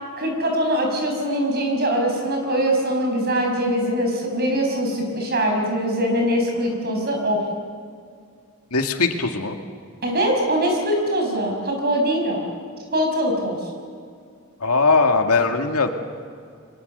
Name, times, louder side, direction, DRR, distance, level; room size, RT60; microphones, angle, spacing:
voice 1, 0.2-7.4 10.0-12.4 12.9-13.6, equal, 45° right, 2 dB, 5.9 m, -22 dB
voice 2, 8.7-9.6 14.6-15.9, left 4 dB, 85° left, 5 dB, 2.2 m, -19 dB
30.0 x 23.5 x 6.8 m, 2.2 s
head